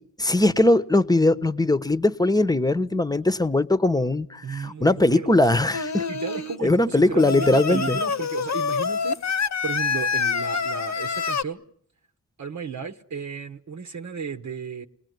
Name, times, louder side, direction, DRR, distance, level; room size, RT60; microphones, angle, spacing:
voice 1, 0.2-6.0 6.6-8.0, left 2 dB, 10° left, 1.0 m, -20 dB
voice 2, 4.4-5.3 6.1-11.6 12.4-14.9, right 6 dB, 60° right, 1.1 m, -34 dB
Singing, 5.7-6.6 7.2-11.4, left 5 dB, 55° left, 1.0 m, -26 dB
27.0 x 19.0 x 9.4 m
cardioid pair, 60°, 32 cm